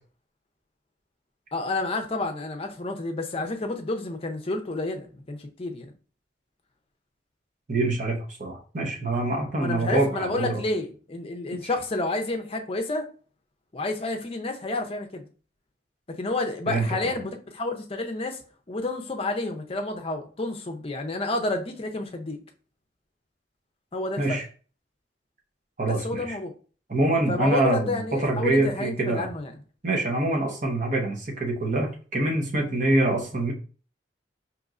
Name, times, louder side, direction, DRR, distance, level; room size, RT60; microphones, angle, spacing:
voice 1, 1.5-5.9 9.6-13.1 13.7-15.3 16.2-18.4 18.7-22.4 23.9-24.4 25.9-26.5 27.3-29.6, left 2 dB, 30° left, 0.5 m, -30 dB
voice 2, 7.7-10.6 16.7-16.9 24.2-24.4 25.8-26.2 26.9-29.3 29.8-33.5, right 2 dB, 45° right, 0.9 m, -25 dB
5.2 x 3.0 x 2.4 m
head